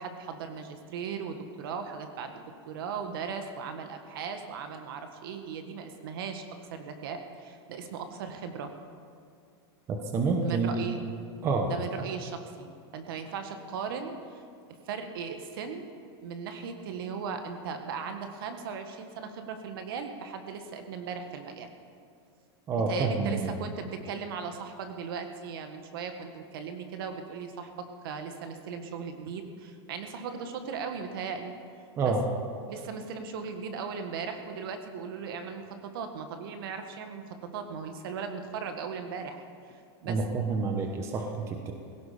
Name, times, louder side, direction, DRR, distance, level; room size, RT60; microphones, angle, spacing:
voice 1, 0.0-6.5 6.7-8.7 10.3-11.0 11.7-14.4 14.7-15.9 16.2-21.7 22.9-31.5 32.0-32.1 32.7-39.4 40.0-40.2, right 6 dB, 55° right, 6 dB, 1.6 m, -38 dB
voice 2, 9.9-10.8 11.4-11.7 22.7-23.5 32.0-32.2 40.1-41.7, right 4 dB, 20° right, 3 dB, 1.0 m, -28 dB
17.0 x 16.5 x 5.1 m, 2.3 s
supercardioid pair, 170°, 14 cm